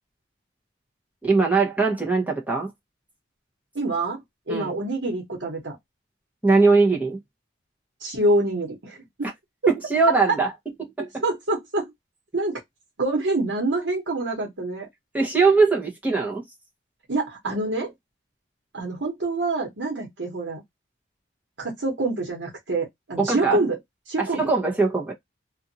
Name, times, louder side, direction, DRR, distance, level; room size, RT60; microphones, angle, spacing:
voice 1, 1.2-2.7 4.5-4.8 6.4-7.2 9.7-10.5 11.0-11.2 15.1-16.4 23.2-23.6 24.2-25.1, right 4 dB, 10° right, 0.9 m, -21 dB
voice 2, 3.7-4.2 4.5-5.8 8.0-9.3 11.0-11.9 12.3-12.6 13.0-14.9 17.1-17.9 18.7-20.6 21.6-23.8 24.1-24.4, right 2 dB, 80° right, 1.1 m, -26 dB
2.6 x 2.5 x 2.7 m
head